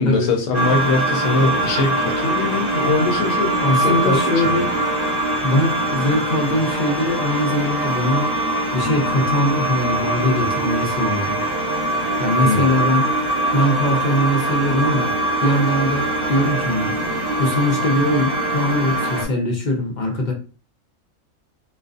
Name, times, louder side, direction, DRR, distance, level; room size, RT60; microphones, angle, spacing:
voice 1, 0.0-4.6 12.4-12.7, left 3 dB, 70° left, 3 dB, 0.9 m, -22 dB
sound 1, 0.5-19.3, right 1 dB, 75° right, 1.2 m, -22 dB
voice 2, 3.6-4.7 5.4-8.4 8.7-11.4 12.2-13.1 13.5-15.1 15.4-16.9 17.4-20.3, left 1 dB, 55° left, 2 dB, 0.5 m, -21 dB
2.4 x 2.3 x 2.4 m, 0.36 s
omnidirectional pair, 1.4 m